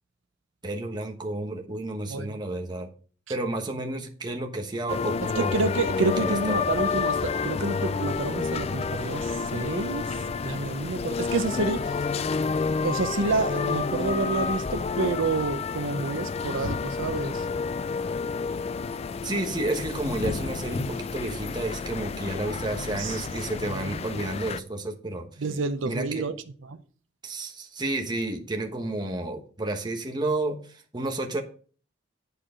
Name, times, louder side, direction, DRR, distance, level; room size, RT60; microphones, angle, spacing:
voice 1, 0.6-2.9 3.3-5.5 6.0-6.7 19.2-25.3 25.8-26.2 27.2-31.4, right 2 dB, 25° right, 1.2 m, -31 dB
sound 1, 4.9-24.6, left 5 dB, 35° left, 0.3 m, -30 dB
voice 2, 5.4-10.1 10.4-12.0 12.8-17.5 23.0-23.3 23.6-23.9 25.4-26.3 26.7-26.8, right 3 dB, 90° right, 0.6 m, -29 dB
10.0 x 4.6 x 5.0 m
head